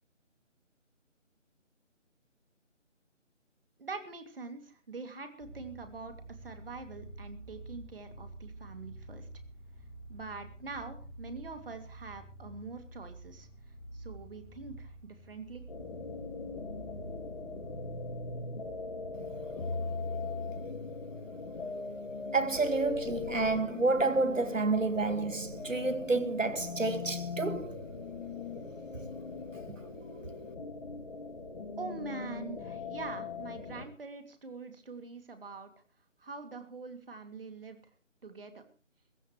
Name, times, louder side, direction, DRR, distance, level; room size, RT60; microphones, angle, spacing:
voice 1, 3.8-9.3 10.1-13.5 13.9-15.6 31.8-35.7 36.2-37.8 38.2-38.6, right 4 dB, 45° right, 2.7 m, -44 dB
sound 1, 5.4-18.1, right 1 dB, 20° left, 4.2 m, -48 dB
sound 2, 15.7-33.8, left 4 dB, 45° left, 2.8 m, -40 dB
voice 2, 22.3-27.8 29.7-29.8, right 3 dB, 85° right, 2.1 m, -29 dB
21.0 x 15.5 x 3.2 m
figure-of-eight pair, 160°, 37 cm